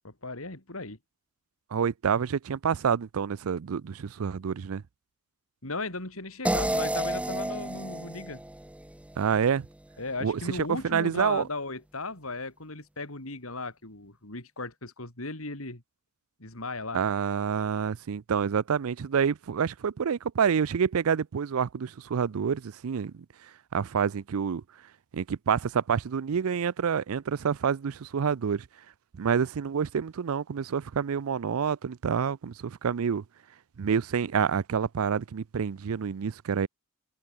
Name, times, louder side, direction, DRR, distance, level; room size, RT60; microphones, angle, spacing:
voice 1, 0.0-1.0 5.6-8.4 10.0-15.8 16.4-17.0, left 3 dB, 75° left, 4.2 m, -36 dB
voice 2, 1.7-4.8 9.2-9.7 10.2-11.4 16.9-23.1 23.7-24.6 25.1-28.7 29.2-33.2 33.8-36.7, right 7 dB, 80° right, 0.5 m, -28 dB
sound 1, 6.4-9.5, right 1 dB, 5° right, 0.6 m, -31 dB
head